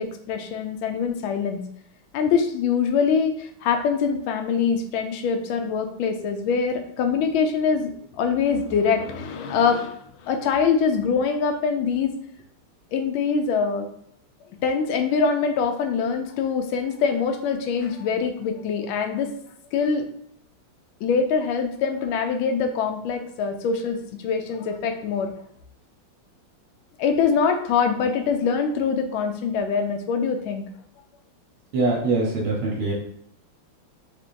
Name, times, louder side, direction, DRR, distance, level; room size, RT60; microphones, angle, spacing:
voice 1, 0.0-1.6 2.1-10.0 10.2-12.1 12.9-13.9 14.6-19.3 19.7-20.0 21.0-25.3 27.0-30.6, left 6 dB, 75° left, 5 dB, 1.4 m, -24 dB
voice 2, 31.7-32.9, right 3 dB, 80° right, -2 dB, 1.9 m, -23 dB
4.4 x 3.5 x 2.6 m, 0.70 s
omnidirectional pair, 2.4 m